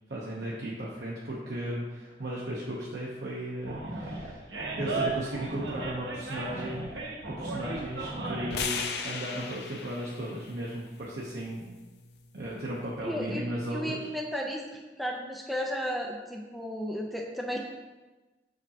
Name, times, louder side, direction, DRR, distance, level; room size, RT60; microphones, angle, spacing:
voice 1, 0.1-4.5 4.8-6.9 7.3-11.7 12.3-14.1, right 1 dB, 70° right, -5 dB, 0.8 m, -36 dB
Animal, 3.6-8.7, right 3 dB, 85° right, 1.0 m, -35 dB
sound 1, 8.5-12.7, left 5 dB, 65° left, 0.5 m, -38 dB
voice 2, 13.0-13.5 13.7-17.6, equal, ahead, -1 dB, 0.5 m, -34 dB
6.5 x 5.1 x 2.8 m, 1.2 s
head